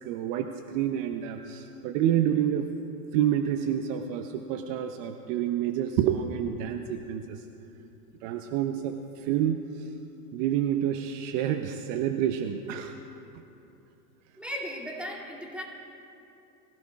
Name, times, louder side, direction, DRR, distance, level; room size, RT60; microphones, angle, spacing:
voice 1, 0.0-2.7 3.1-7.4 8.2-9.9 10.3-12.9, right 10 dB, 50° right, 6 dB, 0.8 m, -28 dB
voice 2, 14.4-15.6, equal, ahead, -3 dB, 2.6 m, -36 dB
23.5 x 16.5 x 2.4 m, 2.9 s
hypercardioid pair, 105°, 48 cm